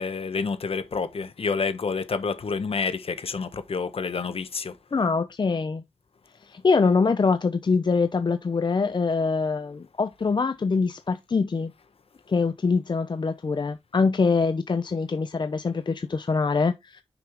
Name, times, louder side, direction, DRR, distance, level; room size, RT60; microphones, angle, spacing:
voice 1, 0.0-4.7, left 5 dB, 65° left, 1.0 m, -28 dB
voice 2, 4.9-5.8 6.4-11.7 12.3-17.0, left 4 dB, 45° left, 0.6 m, -24 dB
5.9 x 5.6 x 3.5 m
wide cardioid pair, 75°, 11 cm